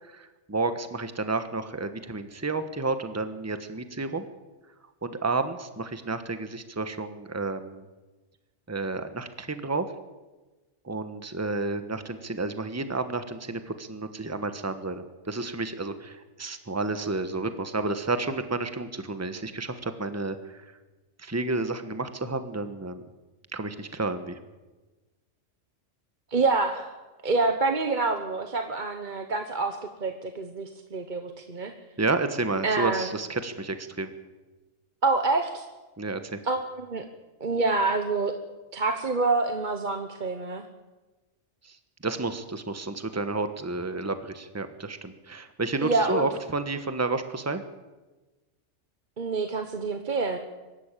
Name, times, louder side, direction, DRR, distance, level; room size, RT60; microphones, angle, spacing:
voice 1, 0.1-4.3 5.0-7.8 8.7-9.9 10.8-20.6 21.2-23.0 23.5-24.4 32.0-34.1 36.0-36.4 41.7-41.8 42.0-47.6, right 3 dB, 15° right, 9 dB, 1.3 m, -31 dB
voice 2, 26.3-26.9 27.2-31.7 32.6-33.1 35.0-35.6 36.4-37.0 37.4-38.3 38.7-40.7 45.8-46.3 49.2-50.4, right 3 dB, 40° right, 6 dB, 1.3 m, -27 dB
24.0 x 13.0 x 9.1 m, 1.2 s
omnidirectional pair, 1.3 m